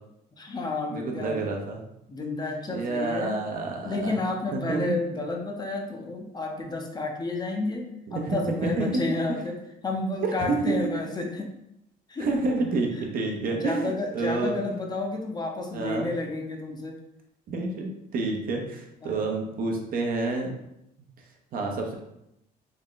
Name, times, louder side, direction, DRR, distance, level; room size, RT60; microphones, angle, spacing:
voice 1, 0.4-1.4 2.1-3.4 3.8-7.9 8.1-9.6 9.8-11.5 12.1-12.3 13.5-17.0 19.0-19.3, left 2 dB, 25° left, 1 dB, 0.6 m, -31 dB
voice 2, 0.9-1.8 2.7-4.1 4.5-4.8 8.1-9.0 10.2-10.7 12.2-14.6 15.7-16.1 17.5-20.5 21.5-21.9, right 3 dB, 55° right, 1 dB, 0.7 m, -28 dB
3.5 x 2.1 x 3.9 m, 0.82 s
cardioid pair, 110°, 17 cm